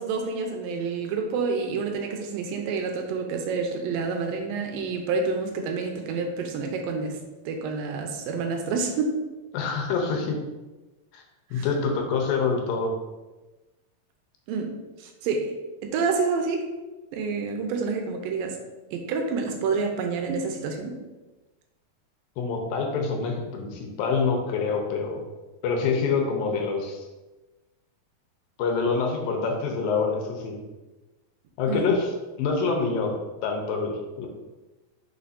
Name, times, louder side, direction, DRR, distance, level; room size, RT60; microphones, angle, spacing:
voice 1, 0.0-7.2 7.5-9.2 11.5-11.7 14.5-15.5 15.8-16.7 17.1-18.6 18.9-21.0 31.7-31.9, right 4 dB, 85° right, 4 dB, 2.4 m, -28 dB
voice 2, 9.5-10.4 11.1-11.2 11.5-12.9 22.4-25.2 25.6-27.1 28.6-30.5 31.6-32.1 32.4-33.1 33.4-34.3, left 4 dB, 80° left, 2 dB, 2.5 m, -26 dB
6.7 x 5.7 x 2.7 m, 1.1 s
omnidirectional pair, 4.2 m